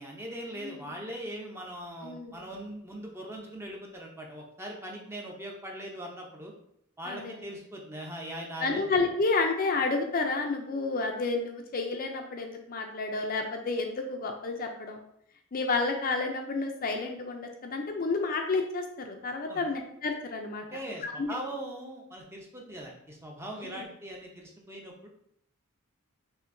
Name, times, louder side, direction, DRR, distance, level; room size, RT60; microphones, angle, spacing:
voice 1, 0.0-6.5 7.0-8.8 19.5-19.6 20.7-25.1, right 1 dB, 10° right, 0 dB, 0.6 m, -40 dB
voice 2, 2.0-2.4 7.1-7.4 8.6-15.0 15.5-20.7 21.0-21.4 23.6-23.8, left 3 dB, 40° left, 3 dB, 0.5 m, -30 dB
5.6 x 2.7 x 2.6 m, 0.71 s
head